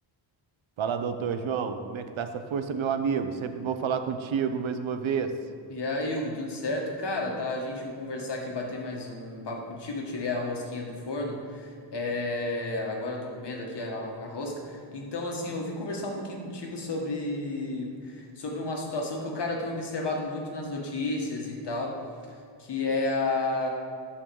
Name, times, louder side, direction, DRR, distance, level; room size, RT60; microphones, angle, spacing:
voice 1, 0.8-5.3, right 6 dB, 80° right, 8 dB, 0.8 m, -29 dB
voice 2, 5.7-14.5 14.9-21.9 22.6-23.7, left 2 dB, 60° left, 0 dB, 1.6 m, -32 dB
11.0 x 4.2 x 6.9 m, 2.4 s
wide cardioid pair, 155°, 46 cm